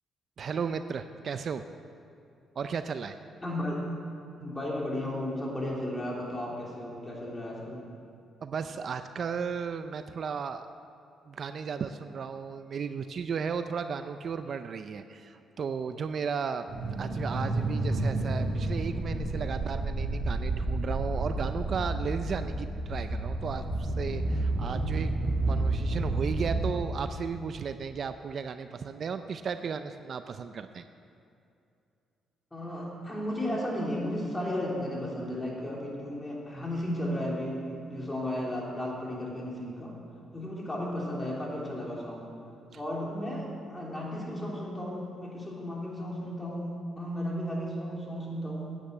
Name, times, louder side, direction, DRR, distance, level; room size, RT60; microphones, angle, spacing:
voice 1, 0.4-1.7 2.6-3.2 8.4-10.7 11.3-16.7 17.0-25.1 25.5-30.8, right 6 dB, 55° right, 10 dB, 0.5 m, -35 dB
voice 2, 3.4-3.8 4.4-7.8 32.5-39.9 40.3-42.3 42.7-48.8, left 1 dB, 15° left, -3 dB, 3.2 m, -34 dB
sound 1, 16.7-26.7, right 2 dB, 70° right, 2.1 m, -30 dB
9.9 x 8.9 x 7.7 m, 2.6 s
cardioid pair, 90°, 0 cm